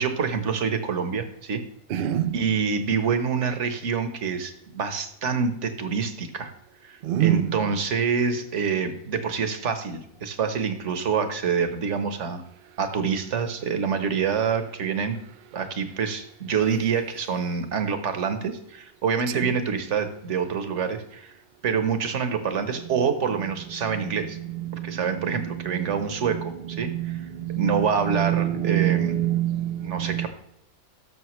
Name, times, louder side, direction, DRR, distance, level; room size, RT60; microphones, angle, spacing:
voice 1, 0.0-1.6 2.0-6.5 6.8-12.4 12.8-15.2 15.5-21.3 21.6-24.4 24.8-27.2 27.5-29.2 29.8-30.3, right 6 dB, 55° right, 1.2 m, -26 dB
voice 2, 1.9-2.4 7.0-7.6 24.5-25.9 26.8-30.3, right 12 dB, 85° right, 0.4 m, -26 dB
12.5 x 6.6 x 3.1 m
omnidirectional pair, 1.5 m